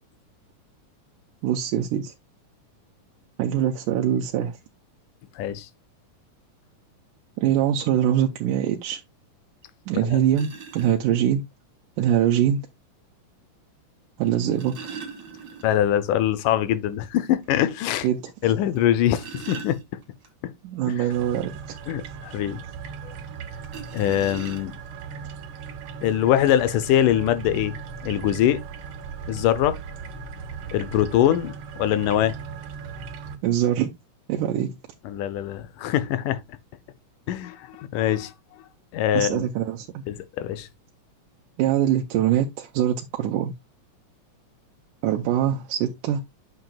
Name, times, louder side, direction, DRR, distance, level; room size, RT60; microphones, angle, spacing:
voice 1, 1.4-2.1 3.4-4.6 7.4-9.0 9.9-11.4 12.0-12.6 14.2-14.9 18.0-18.5 20.6-21.5 33.4-33.9 34.3-34.8 39.1-40.0 41.6-43.5 45.0-46.2, right 10 dB, 90° right, 2.3 m, -23 dB
voice 2, 5.4-5.7 15.6-18.1 18.4-19.8 20.4-20.5 20.9-21.1 21.9-22.6 23.0-23.1 23.9-24.7 26.0-27.8 28.0-28.6 29.3-29.8 30.7-31.5 31.8-32.3 35.1-36.4 37.3-38.3 38.9-39.4 40.1-40.7, left 11 dB, 85° left, 2.3 m, -23 dB
sound 1, 9.6-9.7 10.3-11.0 12.3-12.4 14.2-16.0 16.3-16.4 16.8-16.9 17.4-17.5 18.8-20.3 23.6-25.0 25.9-26.0 26.3-26.5, right 6 dB, 40° right, 2.2 m, -40 dB
sound 2, 21.1-33.4, right 6 dB, 65° right, 1.3 m, -38 dB
8.9 x 6.8 x 2.3 m
omnidirectional pair, 3.6 m